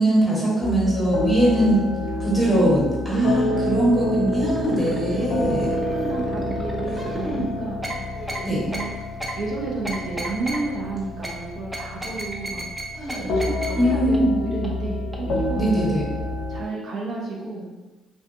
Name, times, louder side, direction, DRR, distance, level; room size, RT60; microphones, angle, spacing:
voice 1, 0.0-1.8 2.2-5.7 8.4-8.6 13.8-14.3 15.5-16.0, right 1 dB, 5° left, -7 dB, 1.3 m, -21 dB
sound 1, 0.6-16.7, left 1 dB, 65° left, 0.5 m, -29 dB
voice 2, 1.8-2.3 3.1-4.1 5.0-7.8 8.7-8.9 9.3-12.7 13.1-16.0 16.5-17.7, right 3 dB, 60° right, -3 dB, 0.6 m, -31 dB
sound 2, 4.3-5.0 5.4-7.4 7.8-8.0 8.3-8.4 8.7-8.9 9.2-9.3 9.8-10.6 11.2-11.3 11.7-12.8 13.1-13.2 13.4-13.7 14.1-14.2 14.6-14.7 15.1-15.2, right 1 dB, 15° right, 0.5 m, -32 dB
sound 3, 5.0-6.2 6.8-7.7 8.1-9.0 11.0-11.1 12.9-13.8, equal, 20° left, 1.0 m, -36 dB
2.6 x 2.3 x 2.5 m, 1.2 s
cardioid pair, 85°, 0 cm